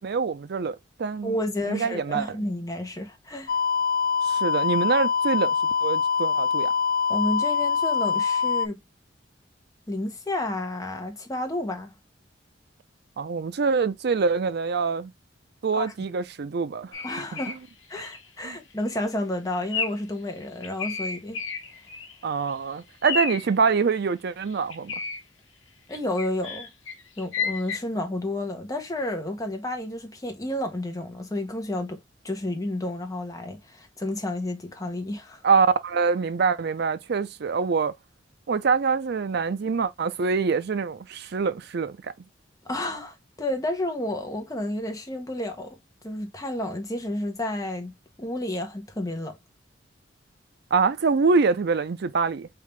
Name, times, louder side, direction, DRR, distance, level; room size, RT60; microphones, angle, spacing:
voice 1, 0.0-1.4 1.7-2.4 4.2-6.7 13.2-15.1 15.6-17.1 17.3-17.4 18.4-18.6 22.2-24.9 35.4-37.9 38.5-42.1 50.7-52.5, right 5 dB, 60° right, 0.5 m, -25 dB
voice 2, 1.2-3.6 7.1-8.8 9.9-11.9 15.8-15.9 17.0-17.6 17.9-21.4 25.9-26.7 27.2-32.0 32.2-35.4 42.6-45.8 46.0-47.9 48.2-49.4, left 1 dB, 20° left, 1.0 m, -31 dB
sound 1, 3.5-8.7, left 6 dB, 50° left, 0.3 m, -24 dB
sound 2, 16.9-17.6 17.9-18.2 18.7-18.9 19.7-20.1 20.4-22.2 22.5-22.6 23.0-23.5 24.5-25.2 25.9-27.8, left 5 dB, 85° left, 1.0 m, -32 dB
3.6 x 3.5 x 3.2 m
head